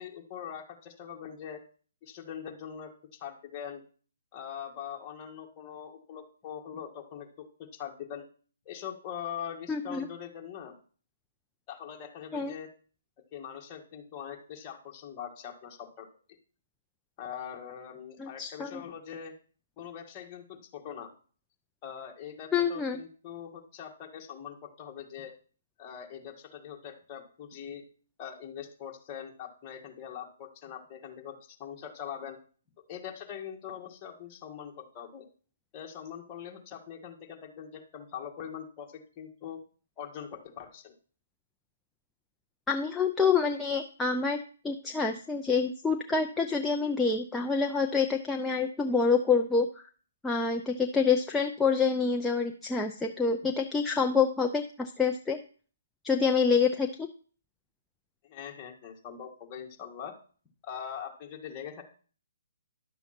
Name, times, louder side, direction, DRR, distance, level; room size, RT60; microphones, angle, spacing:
voice 1, 0.0-1.6 2.0-3.8 4.3-7.5 7.7-8.2 8.7-10.7 11.7-12.7 13.3-16.1 17.2-19.3 19.8-21.1 21.8-25.3 25.8-27.8 28.2-32.4 32.9-35.2 35.7-39.6 40.0-40.9 58.2-60.2 60.6-61.8, left 8 dB, 25° left, 1 dB, 2.0 m, -42 dB
voice 2, 9.7-10.1 12.3-12.5 18.2-18.8 22.5-23.0 42.7-44.4 44.6-49.9 50.2-55.4 56.0-57.1, left 5 dB, 5° left, 2 dB, 0.5 m, -27 dB
11.0 x 6.9 x 4.4 m, 0.42 s
hypercardioid pair, 155°, 0 cm